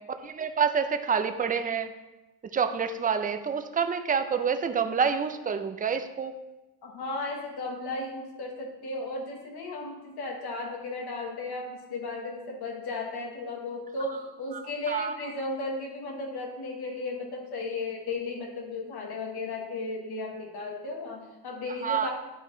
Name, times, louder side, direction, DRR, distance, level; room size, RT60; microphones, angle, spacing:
voice 1, 0.2-1.9 2.5-6.3 14.5-15.1 21.8-22.1, right 6 dB, 20° right, 9 dB, 0.5 m, -27 dB
voice 2, 6.8-22.1, left 2 dB, 75° left, 1 dB, 1.3 m, -35 dB
9.8 x 4.8 x 3.8 m, 1.0 s
cardioid pair, 115°, 38 cm